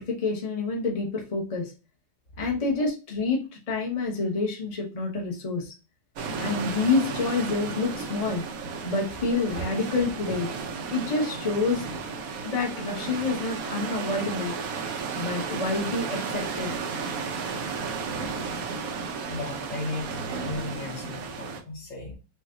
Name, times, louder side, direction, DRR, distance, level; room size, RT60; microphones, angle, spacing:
voice 1, 0.0-1.7 2.4-3.4 3.7-5.7 6.4-8.4 8.8-10.5 10.9-11.8 12.4-14.5 15.2-16.8, left 3 dB, 25° left, -1 dB, 1.0 m, -28 dB
sound 1, 6.2-21.6, right 5 dB, 65° right, 0.9 m, -33 dB
voice 2, 19.2-22.1, left 2 dB, 65° left, -3 dB, 2.2 m, -36 dB
5.5 x 2.6 x 2.5 m, 0.31 s
omnidirectional pair, 2.1 m